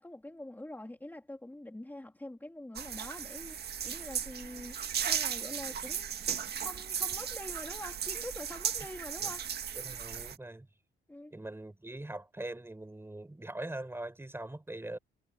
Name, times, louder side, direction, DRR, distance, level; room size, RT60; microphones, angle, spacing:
voice 1, 0.0-6.1 6.6-9.7 11.1-11.3, left 1 dB, 10° left, 2.9 m, -45 dB
sound 1, 2.8-10.4, right 8 dB, 55° right, 1.8 m, -36 dB
voice 2, 9.8-10.7 11.3-15.0, right 1 dB, 10° right, 5.5 m, -42 dB
cardioid pair, 90°, 20 cm